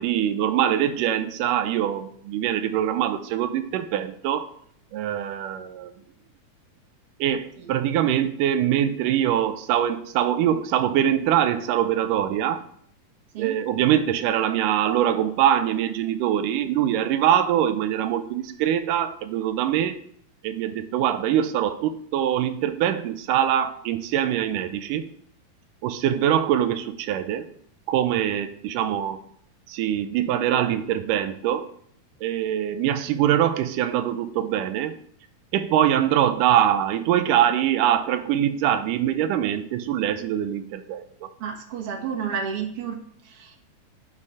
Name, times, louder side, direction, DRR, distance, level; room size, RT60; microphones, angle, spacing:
voice 1, 0.0-4.5 4.9-5.9 7.2-12.6 13.4-20.0 20.4-25.0 25.8-27.5 27.9-29.2 29.7-31.7 32.2-35.0 35.5-41.3, right 10 dB, 85° right, 10 dB, 2.2 m, -23 dB
voice 2, 41.4-43.0 43.3-43.6, right 7 dB, 55° right, 1 dB, 1.9 m, -31 dB
9.8 x 5.6 x 4.8 m, 0.63 s
omnidirectional pair, 3.8 m